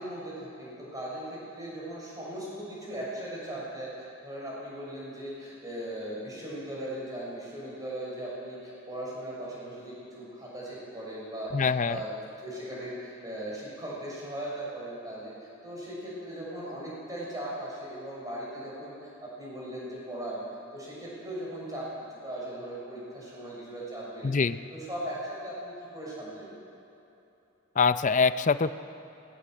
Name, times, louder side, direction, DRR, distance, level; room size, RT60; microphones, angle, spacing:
voice 1, 0.0-12.1 12.4-20.4 20.7-21.9 22.2-24.4 24.7-26.5, right 1 dB, 15° right, -5 dB, 6.6 m, -38 dB
voice 2, 11.5-12.0 24.2-24.6 27.8-28.7, left 5 dB, 35° left, 12 dB, 0.5 m, -24 dB
19.5 x 18.5 x 7.9 m, 2.9 s
head